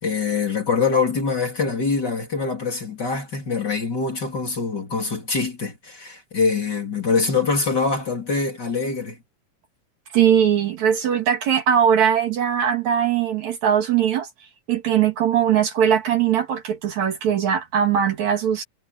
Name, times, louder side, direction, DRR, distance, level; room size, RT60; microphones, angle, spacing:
voice 1, 0.0-9.2, left 4 dB, 30° left, 3.6 m, -24 dB
voice 2, 10.1-14.3 14.7-18.6, right 9 dB, 60° right, 3.2 m, -20 dB
omnidirectional pair, 3.8 m